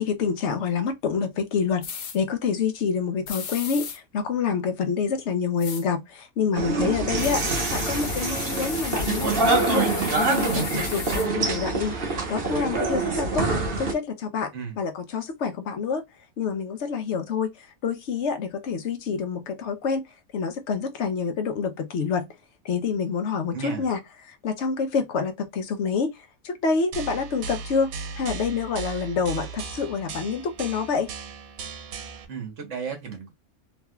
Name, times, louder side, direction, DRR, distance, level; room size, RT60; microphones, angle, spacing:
voice 1, 0.0-7.4 7.7-9.9 10.2-11.9 12.3-13.5 13.8-16.0 16.4-20.0 20.3-22.3 22.6-24.0 24.3-26.2 26.4-27.9 28.2-31.1, left 5 dB, 60° left, 1.0 m, -27 dB
sound 1, 1.8-2.2 3.3-4.0 5.6-5.8 7.2-11.3, left 7 dB, 90° left, 1.1 m, -35 dB
sound 2, 6.5-13.9, right 3 dB, 45° right, 1.1 m, -25 dB
voice 2, 7.0-7.5 14.5-14.8 23.5-23.9 32.3-33.3, right 6 dB, 60° right, 1.4 m, -35 dB
sound 3, 26.9-32.3, right 5 dB, 85° right, 1.2 m, -37 dB
3.3 x 3.1 x 2.2 m
omnidirectional pair, 1.4 m